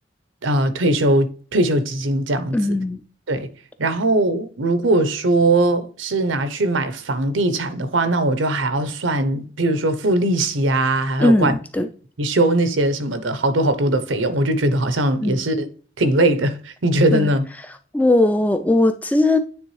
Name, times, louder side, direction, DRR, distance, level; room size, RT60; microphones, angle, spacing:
voice 1, 0.4-2.6 3.3-3.5 3.8-11.6 12.2-15.7 16.0-17.4, right 1 dB, 80° right, 0.8 m, -20 dB
voice 2, 2.5-3.0 11.2-11.9 15.2-15.4 17.1-17.3 17.9-19.4, left 2 dB, 10° left, 0.4 m, -18 dB
9.4 x 3.5 x 3.2 m
head